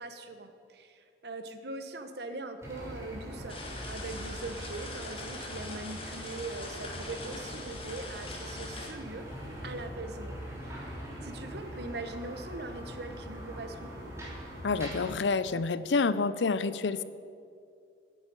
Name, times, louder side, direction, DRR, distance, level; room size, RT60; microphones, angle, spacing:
voice 1, 0.0-3.6 3.9-9.3 9.6-10.3 10.6-13.9, right 2 dB, 60° right, 8 dB, 1.1 m, -41 dB
sound 1, 2.6-15.1, equal, 15° right, 3.2 m, -42 dB
sound 2, 3.5-8.9, left 3 dB, 30° left, 1.9 m, -43 dB
voice 2, 14.6-17.0, left 4 dB, 75° left, 15 dB, 0.5 m, -28 dB
10.0 x 8.8 x 8.5 m, 2.4 s
head